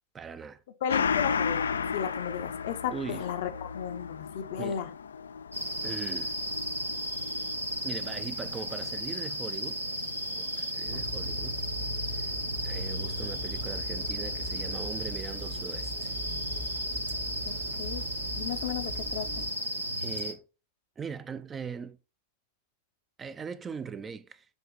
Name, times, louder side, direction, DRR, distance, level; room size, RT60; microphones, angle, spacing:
voice 1, 0.1-0.6 2.9-3.2 4.6-4.8 5.8-6.3 7.8-9.8 10.3-11.6 12.1-12.3 12.6-16.1 20.0-20.4 21.0-22.0 23.2-24.5, right 6 dB, 20° right, 0.5 m, -40 dB
voice 2, 0.8-4.9 10.9-11.2 17.5-18.0 18.4-19.3, left 9 dB, 55° left, 0.7 m, -35 dB
Gong, 0.9-9.9 10.2-10.3, left 6 dB, 70° left, 0.3 m, -35 dB
sound 1, 5.5-20.3, equal, 85° right, 1.0 m, -34 dB
sound 2, 10.9-19.5, equal, 60° right, 1.3 m, -39 dB
7.2 x 2.9 x 5.2 m
figure-of-eight pair, 90°, 0 cm